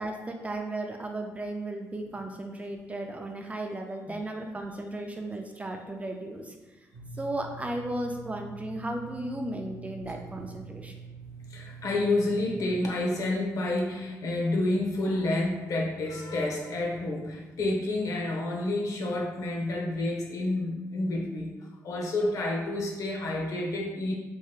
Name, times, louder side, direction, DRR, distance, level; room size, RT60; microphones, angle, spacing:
voice 1, 0.0-6.5 7.2-10.9, right 1 dB, 20° right, 3 dB, 0.4 m, -35 dB
sound 1, 6.9-12.6, right 5 dB, 75° right, 0.6 m, -45 dB
voice 2, 11.5-21.5 21.8-24.1, left 2 dB, 65° left, -1 dB, 0.8 m, -29 dB
4.4 x 3.0 x 2.4 m, 1.2 s
cardioid pair, 90°, 7 cm